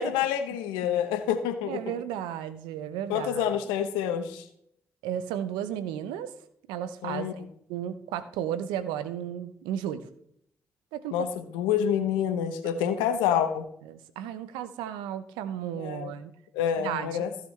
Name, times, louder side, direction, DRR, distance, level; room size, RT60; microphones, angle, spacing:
voice 1, 0.0-1.9 3.1-4.5 7.0-7.3 11.1-13.7 15.7-16.1 16.5-17.3, left 9 dB, 85° left, 9 dB, 1.0 m, -27 dB
voice 2, 1.7-3.5 5.0-6.3 6.7-7.3 7.7-10.0 10.9-11.3 12.8-13.0 13.8-16.3 16.8-17.3, right 10 dB, 80° right, 12 dB, 0.7 m, -34 dB
15.5 x 6.8 x 3.3 m, 0.70 s
hypercardioid pair, 40°, 8 cm